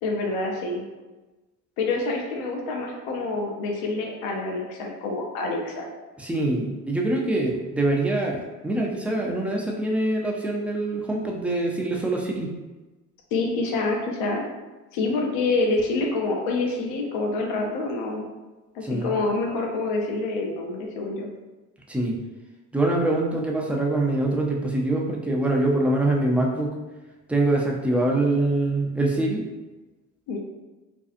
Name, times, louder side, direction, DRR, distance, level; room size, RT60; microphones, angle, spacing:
voice 1, 0.0-0.8 1.8-5.9 13.3-14.4 14.9-18.3 18.7-21.3 30.3-30.4, left 3 dB, 60° left, 1 dB, 0.7 m, -27 dB
voice 2, 6.2-12.5 18.8-19.1 21.9-22.1 22.7-26.7 27.3-29.4, right 2 dB, 5° right, -1 dB, 0.4 m, -24 dB
2.6 x 2.3 x 2.5 m, 1.2 s
hypercardioid pair, 55°, 41 cm